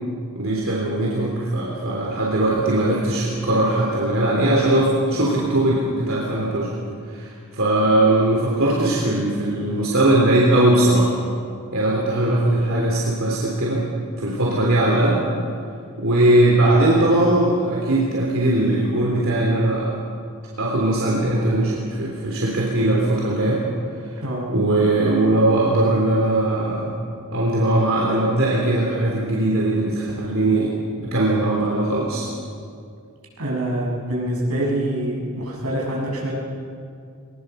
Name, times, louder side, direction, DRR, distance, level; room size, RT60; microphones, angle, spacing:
voice 1, 0.3-6.7 7.1-11.1 11.7-13.8 14.2-15.2 16.0-19.9 20.6-23.6 24.5-26.9 27.3-30.7 31.1-32.3, right 1 dB, 65° right, -4 dB, 3.6 m, -20 dB
voice 2, 33.4-36.3, right 1 dB, 90° right, -2 dB, 6.9 m, -25 dB
21.5 x 21.0 x 6.9 m, 2.3 s
head